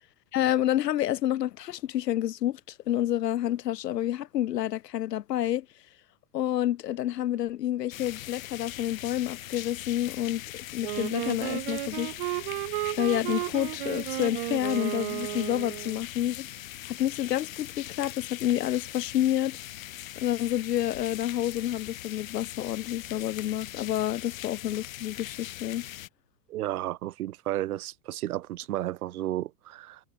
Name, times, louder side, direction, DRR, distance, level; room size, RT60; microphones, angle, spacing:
voice 1, 0.3-2.6 2.9-5.7 6.3-10.4 10.7-12.1 13.0-16.5 16.9-19.6 20.2-25.8, left 12 dB, 80° left, 2.4 m, -29 dB
sound 1, 7.9-26.1, left 14 dB, 55° left, 7.2 m, -41 dB
Wind instrument woodwind instrument, 10.8-16.0, right 20 dB, 35° right, 1.1 m, -33 dB
voice 2, 26.5-30.0, right 14 dB, 65° right, 1.4 m, -32 dB
supercardioid pair, 180°, 48 cm